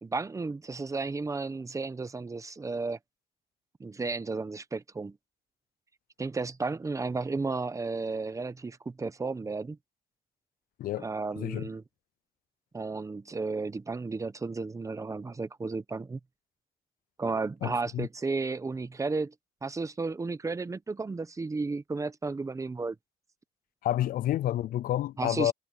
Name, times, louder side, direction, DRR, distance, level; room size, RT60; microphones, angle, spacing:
voice 1, 0.0-3.0 3.8-5.2 6.2-9.8 11.0-11.8 12.7-16.2 17.2-19.3 19.6-23.0 25.2-25.5, right 3 dB, 20° right, 1.0 m, -33 dB
voice 2, 11.4-11.7 17.6-18.1 23.8-25.5, left 13 dB, 60° left, 0.5 m, -29 dB
cardioid pair, 110°, 17 cm